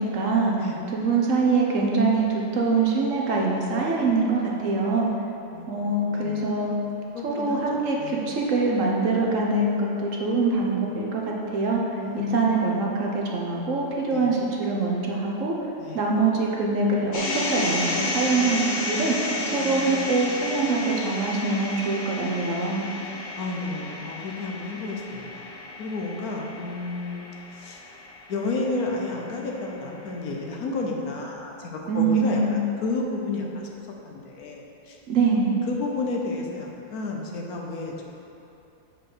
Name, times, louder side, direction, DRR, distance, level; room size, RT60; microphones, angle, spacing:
voice 1, 0.0-5.1 5.7-6.7 7.2-12.0 12.3-15.5 15.9-22.8 31.9-32.6 35.1-35.6, right 3 dB, 55° right, -2 dB, 1.3 m, -24 dB
voice 2, 5.5-6.6 7.1-8.2 12.0-13.0 14.0-14.3 15.8-16.0 19.6-20.1 23.4-25.5 25.8-27.3 27.5-27.8 28.3-32.4 32.8-33.7 34.0-35.0 35.7-38.1, left 3 dB, 70° left, 0 dB, 1.4 m, -32 dB
sound 1, 17.1-29.3, left 2 dB, 85° left, 1.9 m, -32 dB
8.0 x 5.0 x 6.1 m, 2.9 s
omnidirectional pair, 1.7 m